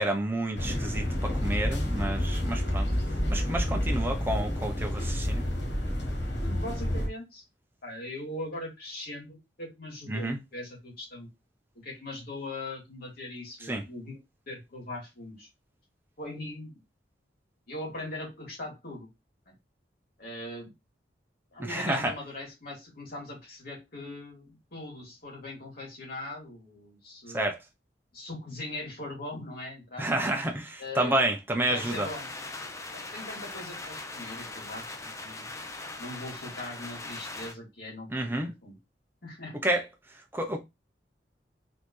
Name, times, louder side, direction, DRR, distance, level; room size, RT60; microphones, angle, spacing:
voice 1, 0.0-2.9 3.3-5.5 10.1-10.4 13.7-13.8 21.6-22.1 27.3-27.6 30.0-32.1 38.1-38.5 39.6-39.9 40.3-40.6, right 1 dB, 15° right, 0.8 m, -29 dB
sound 1, 0.5-7.1, equal, 75° left, 1.4 m, -29 dB
voice 2, 6.4-7.4 7.8-11.3 11.7-14.2 14.5-15.5 16.2-16.8 17.7-19.1 19.5-19.6 20.2-20.7 21.5-27.4 28.1-30.1 30.8-31.2 31.5-32.3 32.9-35.5 36.0-38.7 39.2-39.6, left 2 dB, 55° left, 2.8 m, -40 dB
sound 2, 31.7-37.5, left 2 dB, 15° left, 0.6 m, -40 dB
4.1 x 4.0 x 3.2 m
head